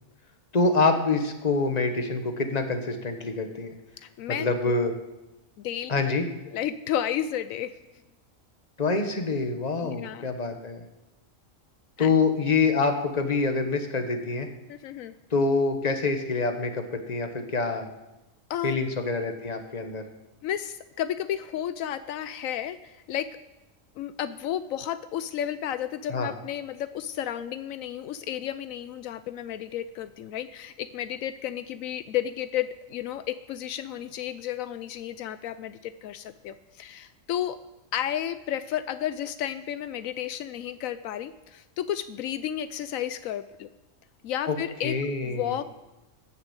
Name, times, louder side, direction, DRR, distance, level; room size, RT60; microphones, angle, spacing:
voice 1, 0.5-3.7 4.3-4.9 5.9-6.3 8.8-10.8 12.0-14.5 15.3-17.9 18.6-20.0 26.1-26.3 44.5-44.6 44.8-45.5, left 3 dB, 30° left, 6 dB, 1.4 m, -26 dB
voice 2, 4.0-4.7 5.6-6.2 6.5-7.8 9.8-10.3 12.0-12.1 14.7-15.1 18.5-18.8 20.4-23.3 24.0-37.6 37.9-43.7 44.2-44.9 45.2-45.7, left 11 dB, 80° left, 13 dB, 1.0 m, -32 dB
14.0 x 7.3 x 8.2 m, 1.0 s
omnidirectional pair, 1.4 m